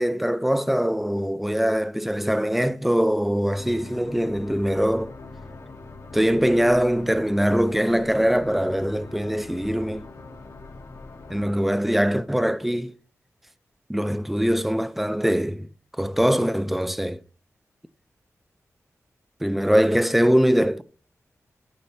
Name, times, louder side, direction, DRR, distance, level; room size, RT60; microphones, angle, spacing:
voice 1, 0.0-5.1 6.1-10.1 11.3-12.9 13.9-15.7 16.0-17.2 19.4-20.8, equal, 5° right, 0.5 m, -22 dB
sound 1, 3.6-11.5, left 3 dB, 65° left, 1.4 m, -42 dB
10.5 x 5.8 x 4.2 m
wide cardioid pair, 115°, 6 cm